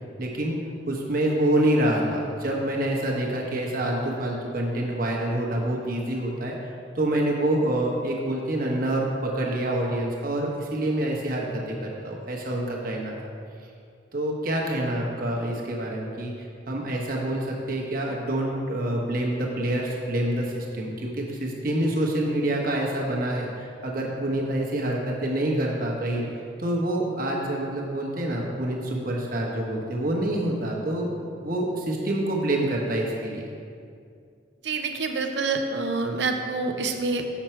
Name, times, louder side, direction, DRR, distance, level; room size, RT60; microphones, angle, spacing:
voice 1, 0.2-0.5 0.9-13.1 14.1-26.3 26.6-31.1 31.4-33.4, right 1 dB, 50° right, -1 dB, 1.1 m, -27 dB
voice 2, 34.6-37.4, right 3 dB, 70° right, 5 dB, 0.6 m, -27 dB
7.2 x 6.0 x 4.4 m, 2.4 s
head